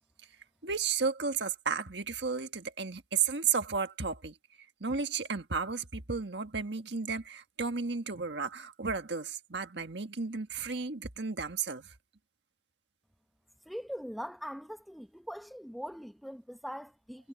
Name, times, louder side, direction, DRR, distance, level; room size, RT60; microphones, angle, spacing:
voice 1, 0.6-4.4 4.8-11.9, right 5 dB, 75° right, 1.6 m, -33 dB
voice 2, 13.7-17.3, equal, ahead, 0.9 m, -42 dB
head